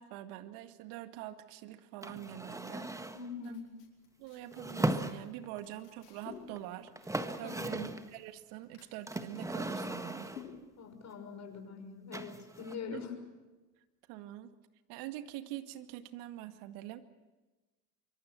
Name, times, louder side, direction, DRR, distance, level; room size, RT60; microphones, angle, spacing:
voice 1, 0.0-3.1 3.4-3.6 4.2-10.3 12.9-13.1 14.1-14.5 14.9-17.0, right 13 dB, 60° right, 9 dB, 2.1 m, -45 dB
sound 1, 2.0-3.3 4.5-5.6 6.6-6.7 6.9-8.1 9.1-10.6 12.1-12.8, right 1 dB, 5° right, 1.5 m, -37 dB
sound 2, 3.1-10.9, left 7 dB, 85° left, 5.4 m, -55 dB
voice 2, 3.1-3.7 7.4-7.9 10.8-13.2, left 5 dB, 35° left, 6 dB, 6.2 m, -43 dB
25.5 x 24.5 x 6.2 m, 1.2 s
hypercardioid pair, 85°, 47 cm